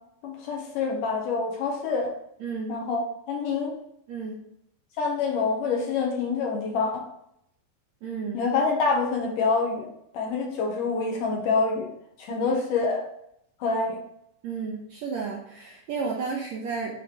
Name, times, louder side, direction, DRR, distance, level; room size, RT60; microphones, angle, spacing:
voice 1, 0.2-2.1 2.7-3.7 5.0-7.1 8.3-9.9 10.1-11.9 12.2-13.0 13.6-14.0, left 4 dB, 70° left, 0 dB, 2.6 m, -26 dB
voice 2, 2.4-2.8 4.1-4.4 8.0-8.4 12.3-12.5 14.4-16.9, right 5 dB, 70° right, -2 dB, 1.7 m, -32 dB
9.2 x 3.5 x 4.8 m, 0.75 s
omnidirectional pair, 4.2 m